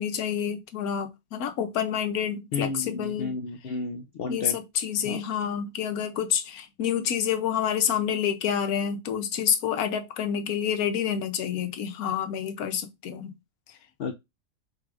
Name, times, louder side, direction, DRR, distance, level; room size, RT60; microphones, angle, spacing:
voice 1, 0.0-3.3 4.3-13.3, left 8 dB, 90° left, 1.2 m, -28 dB
voice 2, 2.5-4.6 5.0-5.2 14.0-14.1, left 4 dB, 65° left, 0.5 m, -32 dB
3.8 x 2.5 x 4.7 m
omnidirectional pair, 1.5 m